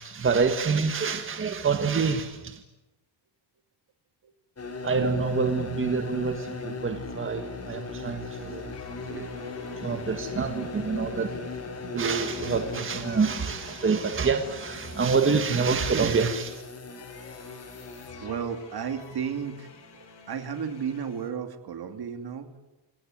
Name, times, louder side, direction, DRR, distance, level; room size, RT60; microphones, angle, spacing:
voice 1, 0.0-2.6 4.8-8.7 9.0-16.6, right 5 dB, 25° right, 6 dB, 1.7 m, -27 dB
sound 1, 4.6-18.4, left 3 dB, 30° left, 4.0 m, -38 dB
sound 2, 8.7-21.3, left 5 dB, 55° left, 5.8 m, -51 dB
voice 2, 18.2-22.5, right 7 dB, 50° right, 8 dB, 2.7 m, -34 dB
28.5 x 20.0 x 9.4 m, 0.99 s
cardioid pair, 160°, 49 cm